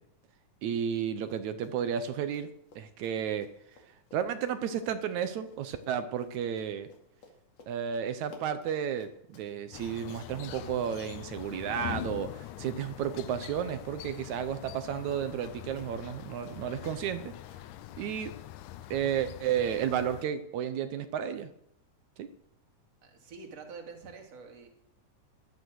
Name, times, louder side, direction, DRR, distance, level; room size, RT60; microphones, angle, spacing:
voice 1, 0.6-2.5 2.8-3.5 4.1-6.9 7.7-17.3 18.0-18.3 18.9-21.5 22.2-22.3, right 8 dB, 70° right, 10 dB, 2.1 m, -32 dB
Run, 1.3-1.8 2.0-13.4 13.6-17.6, left 2 dB, 55° left, 3.2 m, -56 dB
sound 1, 9.7-20.2, left 13 dB, 80° left, 2.1 m, -44 dB
voice 2, 23.0-24.7, right 5 dB, 55° right, 3 dB, 3.4 m, -46 dB
15.0 x 12.0 x 6.4 m, 0.76 s
omnidirectional pair, 3.6 m